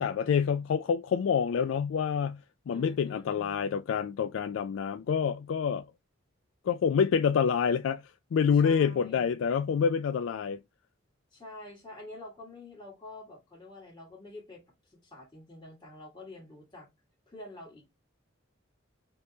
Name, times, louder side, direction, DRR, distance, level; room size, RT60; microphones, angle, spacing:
voice 1, 0.0-5.9 6.6-8.0 8.3-10.6, left 7 dB, 85° left, 0.3 m, -27 dB
voice 2, 2.7-3.8 8.5-9.4 11.3-16.9 17.3-17.9, left 2 dB, 25° left, 1.7 m, -48 dB
5.3 x 3.0 x 2.7 m
head